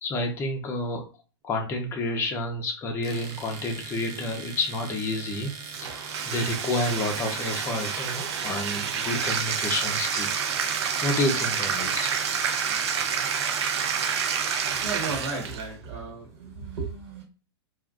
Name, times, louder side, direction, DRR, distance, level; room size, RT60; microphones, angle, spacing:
voice 1, 0.0-1.0 1.4-5.9 6.3-10.3 11.0-12.1, left 2 dB, 15° left, 2 dB, 0.6 m, -29 dB
Domestic sounds home sounds, 3.0-15.4, right 5 dB, 25° right, 0.4 m, -41 dB
Bathtub (filling or washing), 5.7-15.7, right 7 dB, 75° right, 0.6 m, -28 dB
voice 2, 14.7-17.2, right 4 dB, 40° right, -2 dB, 1.1 m, -34 dB
2.5 x 2.3 x 3.6 m, 0.37 s
hypercardioid pair, 150°, 14 cm